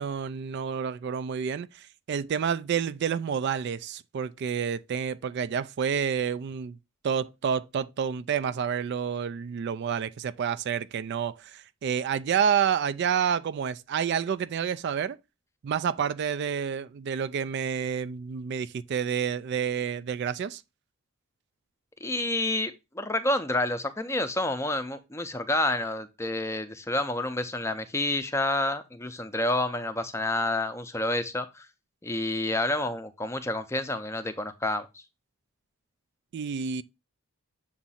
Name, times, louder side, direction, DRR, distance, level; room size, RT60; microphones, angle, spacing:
voice 1, 0.0-6.8 7.0-15.2 15.6-20.6 36.3-36.8, right 7 dB, 50° right, 0.3 m, -29 dB
voice 2, 22.0-31.7 32.0-34.9, left 2 dB, 10° left, 0.5 m, -29 dB
7.1 x 2.6 x 5.6 m
head